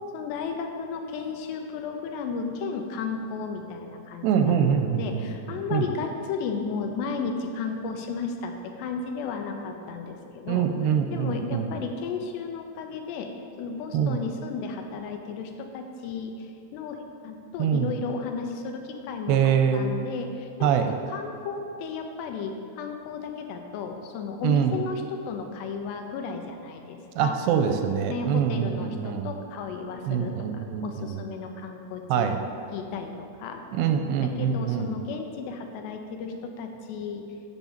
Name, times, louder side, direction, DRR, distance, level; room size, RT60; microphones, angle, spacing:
voice 1, 0.1-10.7 11.1-13.3 13.6-20.7 21.1-27.4 28.1-32.3 32.7-33.6 34.2-37.3, left 5 dB, 85° left, 4 dB, 3.0 m, -34 dB
voice 2, 4.2-5.3 5.7-5.9 10.5-11.7 13.9-14.2 17.6-17.9 19.3-19.9 20.6-20.9 24.4-24.8 27.2-29.3 30.1-31.2 32.1-32.4 33.7-35.0, right 8 dB, 85° right, 6 dB, 2.5 m, -24 dB
8.3 x 7.1 x 7.3 m, 2.6 s
omnidirectional pair, 4.9 m